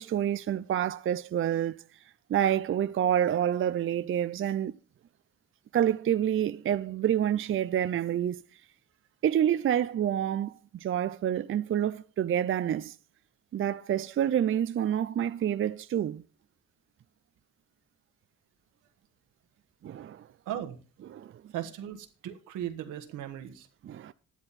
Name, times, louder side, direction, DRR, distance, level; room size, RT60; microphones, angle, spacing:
voice 1, 0.0-1.8 2.3-4.7 5.7-8.4 9.2-12.9 13.5-16.2 19.8-20.3 21.1-21.3 23.8-24.1, right 10 dB, 45° right, 0.5 m, -28 dB
voice 2, 20.4-20.8 21.5-23.7, right 11 dB, 90° right, 1.6 m, -37 dB
12.0 x 11.0 x 4.2 m
cardioid pair, 90°, 30 cm